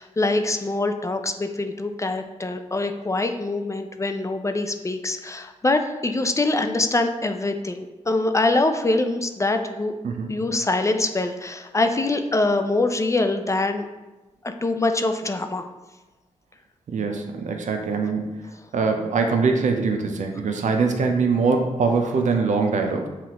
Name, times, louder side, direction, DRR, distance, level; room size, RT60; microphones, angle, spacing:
voice 1, 0.0-9.9 10.3-13.8 14.4-15.6, left 2 dB, 25° left, 7 dB, 0.4 m, -24 dB
voice 2, 16.9-23.1, right 4 dB, 75° right, 4 dB, 0.5 m, -23 dB
5.7 x 2.5 x 2.9 m, 1.1 s
cardioid pair, 55°, 13 cm